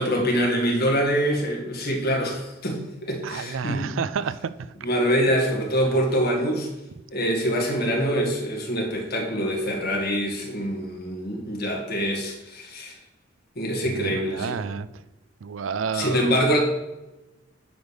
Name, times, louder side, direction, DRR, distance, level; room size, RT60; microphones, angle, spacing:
voice 1, 0.0-3.9 4.8-6.7 7.1-13.0 13.6-14.6 15.9-16.6, equal, 55° left, 0 dB, 2.0 m, -25 dB
voice 2, 3.2-4.5 5.9-6.0 13.8-14.9 15.4-16.4, right 6 dB, 85° right, 14 dB, 0.4 m, -30 dB
10.0 x 3.5 x 6.4 m, 0.99 s
head